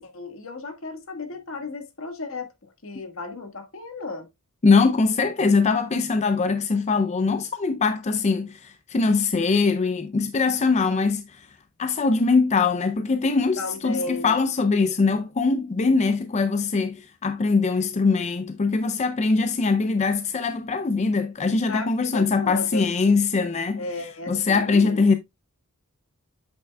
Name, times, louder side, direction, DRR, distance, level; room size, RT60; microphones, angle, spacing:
voice 1, 0.0-4.3 13.6-14.3 21.7-22.9 23.7-25.0, left 3 dB, 65° left, 1.5 m, -34 dB
voice 2, 4.6-11.5 11.8-23.8 24.3-25.1, left 4 dB, 30° left, 0.4 m, -22 dB
8.0 x 6.6 x 2.2 m
head